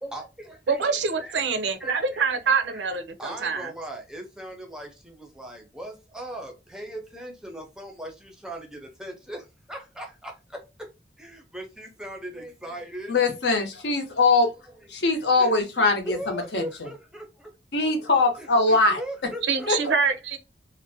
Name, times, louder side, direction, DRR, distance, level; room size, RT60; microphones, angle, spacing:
voice 1, 0.0-2.3 2.7-10.9 11.2-13.2 14.7-17.5 18.4-19.9, right 1 dB, 5° right, 0.5 m, -39 dB
voice 2, 0.7-3.7 19.5-20.4, right 5 dB, 80° right, 0.5 m, -25 dB
voice 3, 13.1-14.5 14.9-16.6 17.7-19.0 19.7-19.8, left 3 dB, 75° left, 0.7 m, -22 dB
2.5 x 2.1 x 2.6 m
head